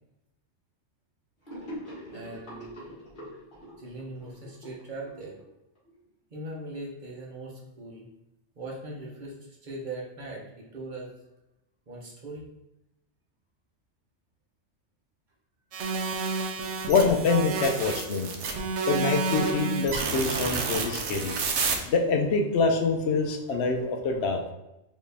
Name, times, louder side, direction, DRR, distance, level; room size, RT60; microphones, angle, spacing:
Gurgling / Sink (filling or washing), 1.5-5.9, equal, 45° left, 1.8 m, -43 dB
voice 1, 2.1-2.7 3.8-5.4 6.3-8.1 8.6-11.1 11.9-12.5 17.8-17.9, right 2 dB, 45° right, -3 dB, 1.0 m, -40 dB
sound 1, 15.7-21.8, right 4 dB, 80° right, 1.0 m, -29 dB
voice 2, 16.9-18.3 18.9-21.3 21.9-24.4, left 4 dB, 70° left, 4 dB, 0.8 m, -25 dB
4.4 x 3.0 x 3.4 m, 0.90 s
omnidirectional pair, 1.2 m